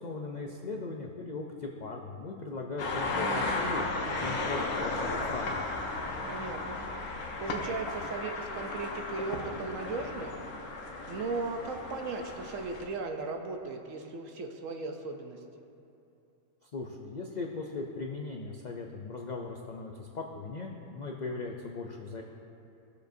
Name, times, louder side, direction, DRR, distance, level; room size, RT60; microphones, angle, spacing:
voice 1, 0.0-3.9 4.2-5.5 16.6-22.2, left 3 dB, 90° left, 1 dB, 0.3 m, -38 dB
sound 1, 2.8-12.8, left 2 dB, 75° left, 1.4 m, -35 dB
voice 2, 6.2-6.9 7.4-10.4 11.1-15.4, right 3 dB, 65° right, 4 dB, 1.0 m, -37 dB
17.5 x 6.7 x 2.7 m, 2.7 s
omnidirectional pair, 1.6 m